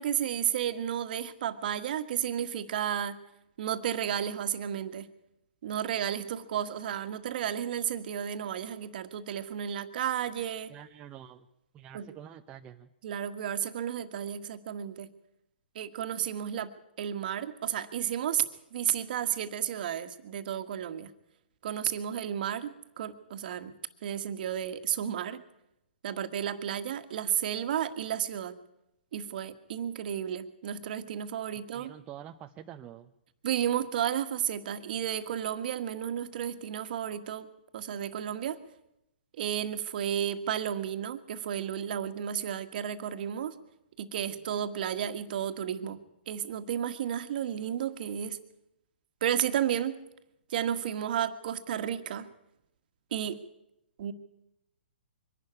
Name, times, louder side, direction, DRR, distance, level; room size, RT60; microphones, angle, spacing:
voice 1, 0.0-3.2 3.6-5.1 5.6-10.7 11.9-12.1 13.0-15.1 15.7-18.5 18.7-21.1 21.6-23.8 24.0-25.4 26.0-28.6 29.1-31.9 33.4-37.5 37.7-38.6 39.4-43.5 44.0-48.4 49.2-50.0 50.5-52.3 53.1-53.4 54.0-54.1, right 9 dB, 50° right, 9 dB, 1.6 m, -32 dB
voice 2, 10.7-11.5 11.7-12.9 31.7-33.1, right 10 dB, 20° right, 4 dB, 0.7 m, -47 dB
23.5 x 12.0 x 9.9 m, 0.85 s
hypercardioid pair, 140°, 6 cm